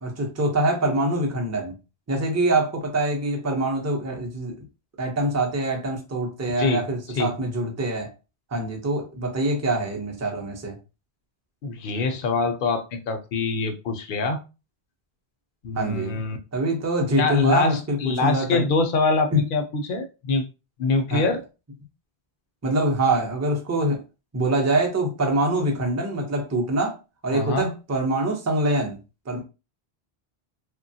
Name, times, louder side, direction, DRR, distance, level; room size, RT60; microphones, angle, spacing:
voice 1, 0.0-1.7 2.1-4.6 5.0-8.1 8.5-10.8 15.8-16.2 16.5-18.7 19.3-19.4 21.1-21.3 22.6-24.0 24.3-27.0 27.2-29.0 29.3-29.4, right 1 dB, 20° right, 0.5 m, -24 dB
voice 2, 11.6-14.4 15.6-16.4 17.2-20.4 20.8-21.4 27.3-27.7, left 3 dB, 60° left, 0.6 m, -24 dB
3.1 x 2.2 x 2.7 m
omnidirectional pair, 1.1 m